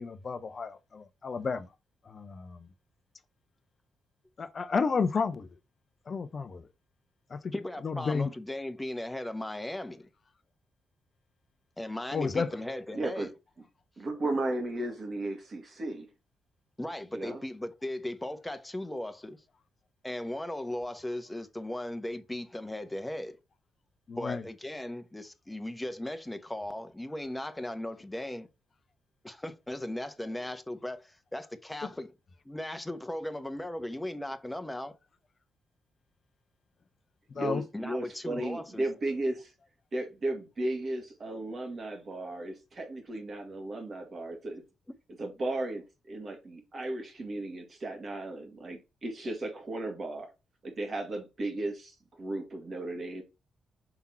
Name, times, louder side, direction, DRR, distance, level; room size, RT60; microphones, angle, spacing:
voice 1, 0.0-1.7 2.1-2.7 4.4-5.5 6.1-6.6 7.3-7.5 7.8-8.3 12.1-12.5 24.1-24.4 37.3-37.6, left 5 dB, 50° left, 0.7 m, -31 dB
voice 2, 7.5-10.1 11.8-13.3 16.8-19.4 20.0-23.4 24.2-28.5 29.2-32.1 32.4-34.9 37.7-38.8 45.2-45.3, left 1 dB, 15° left, 1.1 m, -37 dB
voice 3, 12.9-13.3 14.0-16.1 17.1-17.4 30.2-30.3 37.4-39.5 39.9-44.6 45.2-50.3 50.6-53.2, right 2 dB, 50° right, 2.2 m, -35 dB
5.9 x 3.7 x 4.3 m
hypercardioid pair, 40°, 0 cm